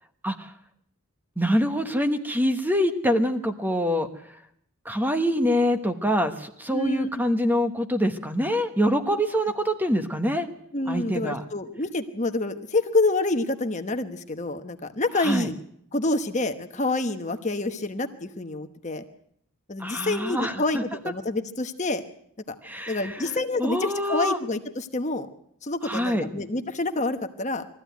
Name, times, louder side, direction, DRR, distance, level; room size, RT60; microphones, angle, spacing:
voice 1, 1.4-4.1 4.8-10.5 10.9-11.4 15.1-15.5 19.8-20.8 22.6-24.4 25.8-26.3, equal, 10° right, 7 dB, 1.1 m, -25 dB
voice 2, 6.7-7.1 10.7-15.6 15.9-19.0 19.7-22.0 22.5-22.6 22.9-25.3 25.6-27.7, left 2 dB, 30° left, 7 dB, 1.1 m, -27 dB
22.0 x 14.5 x 9.3 m, 0.71 s
head